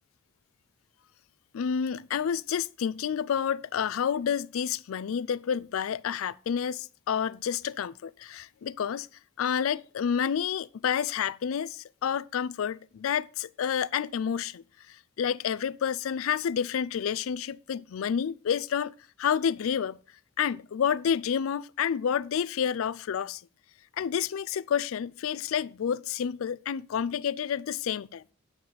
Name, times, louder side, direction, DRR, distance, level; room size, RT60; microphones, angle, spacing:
voice 1, 1.5-9.1 9.4-14.6 15.2-18.9 19.2-20.0 20.4-23.4 24.0-28.2, left 8 dB, 85° left, 0.4 m, -29 dB
9.3 x 9.1 x 4.0 m
head